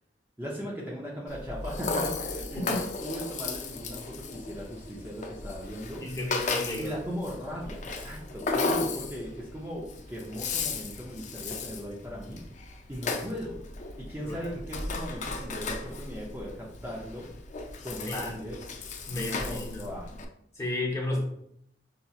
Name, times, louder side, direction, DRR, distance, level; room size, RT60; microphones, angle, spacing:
voice 1, 0.4-6.0 6.8-12.4 12.9-13.6 14.0-17.3 17.8-18.6 19.1-20.1 21.1-21.2, equal, 10° right, -4 dB, 0.6 m, -38 dB
Rattle (instrument), 1.3-20.2, left 3 dB, 40° left, 0.4 m, -35 dB
voice 2, 6.0-6.9 14.2-14.5 18.0-18.3 19.1-19.9 20.5-21.2, left 1 dB, 15° left, -4 dB, 0.9 m, -32 dB
5.3 x 2.8 x 2.4 m, 0.74 s
head